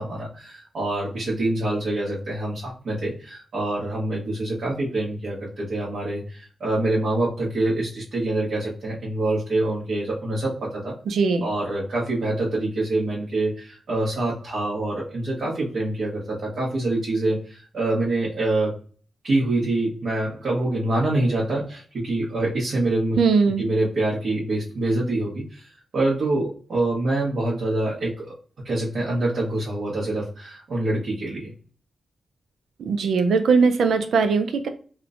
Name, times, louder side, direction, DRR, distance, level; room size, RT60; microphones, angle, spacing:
voice 1, 0.0-10.9 11.4-18.7 19.2-23.2 23.6-28.3 28.6-31.5, right 2 dB, 65° right, -7 dB, 0.9 m, -25 dB
voice 2, 11.1-11.4 23.2-23.6 32.9-34.7, right 5 dB, 85° right, 7 dB, 0.4 m, -20 dB
3.0 x 2.1 x 2.4 m, 0.41 s
wide cardioid pair, 105°, 0 cm